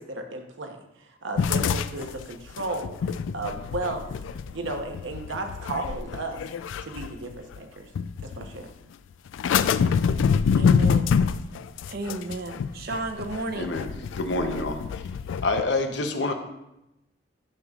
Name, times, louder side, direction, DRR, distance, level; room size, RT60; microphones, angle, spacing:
voice 1, 0.0-4.1 4.5-6.4 6.8-7.9 8.2-8.7, right 2 dB, 85° right, 4 dB, 0.9 m, -34 dB
sound 1, 1.4-7.6 7.9-8.6 9.3-15.6, left 6 dB, 85° left, 0.3 m, -26 dB
voice 2, 10.6-11.1 11.9-13.7, right 2 dB, 55° right, 6 dB, 0.7 m, -33 dB
voice 3, 13.5-13.9 14.2-14.8 15.4-16.3, left 2 dB, 70° left, 5 dB, 0.8 m, -26 dB
9.8 x 6.6 x 2.4 m, 0.89 s
head